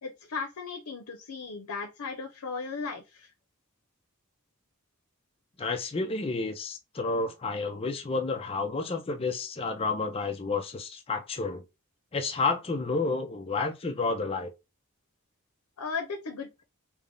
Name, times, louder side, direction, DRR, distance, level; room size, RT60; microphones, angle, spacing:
voice 1, 0.0-3.3 15.8-16.6, left 4 dB, 85° left, 0.6 m, -36 dB
voice 2, 5.6-11.6 12.1-14.5, left 3 dB, 25° left, 0.4 m, -30 dB
3.4 x 2.1 x 3.6 m
head